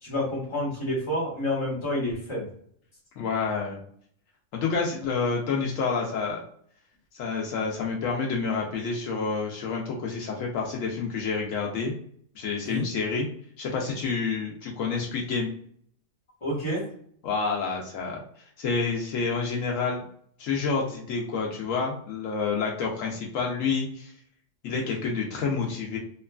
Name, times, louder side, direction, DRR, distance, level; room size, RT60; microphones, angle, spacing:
voice 1, 0.0-2.5 12.6-12.9 16.4-16.8, left 1 dB, 25° left, -5 dB, 1.2 m, -29 dB
voice 2, 3.2-3.8 4.5-6.4 7.2-11.9 12.4-13.3 13.6-15.5 17.2-18.2 18.6-20.0 20.4-24.1 24.6-26.0, left 5 dB, 90° left, -1 dB, 1.0 m, -28 dB
2.9 x 2.3 x 2.2 m, 0.62 s
omnidirectional pair, 1.3 m